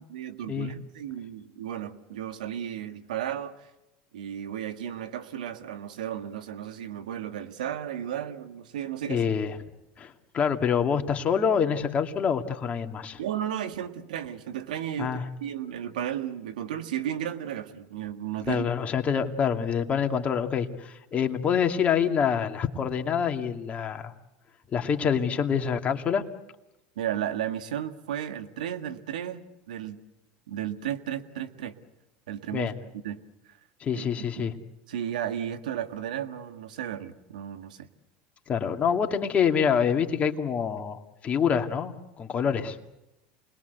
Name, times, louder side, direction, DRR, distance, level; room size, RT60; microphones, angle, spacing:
voice 1, 0.1-3.7 4.1-9.3 13.2-18.7 27.0-30.0 30.5-31.8 32.3-33.6 33.9-34.0 34.4-34.5 34.9-37.9, right 10 dB, 85° right, 9 dB, 1.8 m, -34 dB
voice 2, 9.1-9.6 10.0-13.2 15.0-15.2 18.5-24.1 24.7-26.2 32.5-32.7 33.8-34.5 38.5-42.8, left 7 dB, 35° left, 5 dB, 2.3 m, -26 dB
28.5 x 21.0 x 8.1 m, 0.94 s
hypercardioid pair, 100°, 4 cm